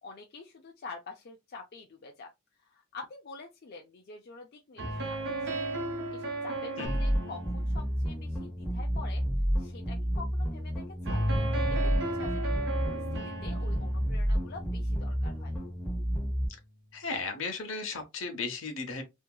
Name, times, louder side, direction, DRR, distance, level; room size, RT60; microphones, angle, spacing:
voice 1, 0.0-2.3 2.6-5.2 5.5-5.6 6.1-9.3 9.6-11.2 11.7-15.5, left 4 dB, 50° left, 0.4 m, -47 dB
sound 1, 4.8-9.0 11.0-16.0, right 2 dB, 60° right, 0.8 m, -36 dB
sound 2, 6.8-16.5, equal, 10° left, 0.7 m, -30 dB
voice 2, 16.9-19.0, left 4 dB, 70° left, 0.8 m, -35 dB
2.7 x 2.7 x 2.2 m
head